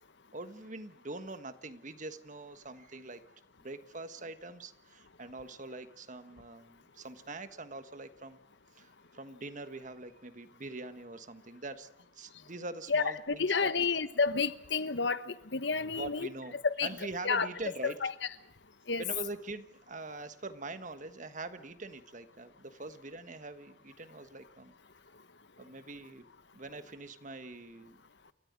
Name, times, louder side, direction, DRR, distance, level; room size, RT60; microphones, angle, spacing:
voice 1, 0.3-3.2 3.6-8.4 8.8-11.9 12.1-13.8 15.9-16.5 16.8-18.0 19.0-24.7 25.6-26.2 26.5-28.0, right 2 dB, 40° right, 1.4 m, -43 dB
voice 2, 12.9-16.3 16.6-16.9 17.2-17.5 17.8-18.1 18.9-19.0, left 5 dB, 65° left, 1.2 m, -30 dB
29.5 x 13.5 x 9.6 m
head